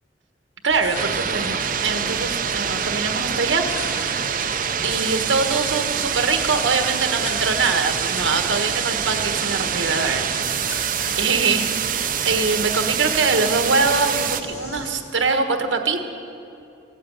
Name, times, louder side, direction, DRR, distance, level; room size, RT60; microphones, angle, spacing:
voice 1, 0.6-3.7 4.8-10.3 10.9-16.1, right 4 dB, 85° right, 5 dB, 1.3 m, -23 dB
sound 1, 0.7-15.0, left 1 dB, 35° left, 1.6 m, -40 dB
sound 2, 0.8-11.3, left 2 dB, 80° left, 2.5 m, -40 dB
sound 3, 0.9-14.4, right 8 dB, 45° right, 0.6 m, -25 dB
16.5 x 8.6 x 8.6 m, 2.8 s
head